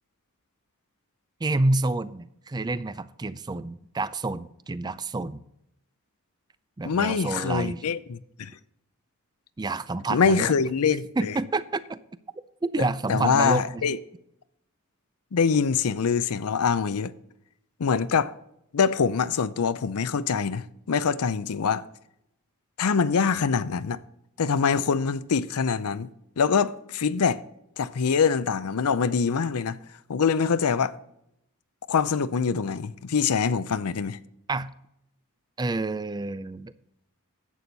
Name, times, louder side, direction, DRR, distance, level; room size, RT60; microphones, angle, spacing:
voice 1, 1.4-5.4 6.8-7.8 9.6-10.5 11.2-12.0 12.3-13.8 34.5-34.7 35.6-36.7, right 2 dB, 20° right, 0.4 m, -28 dB
voice 2, 6.8-8.5 10.1-11.3 13.1-14.0 15.3-17.1 17.8-18.3 18.7-21.8 22.8-24.0 24.4-26.1 26.4-27.4 27.8-29.8 30.1-30.9 31.9-34.2, left 6 dB, 80° left, 0.5 m, -24 dB
11.0 x 8.5 x 4.0 m
head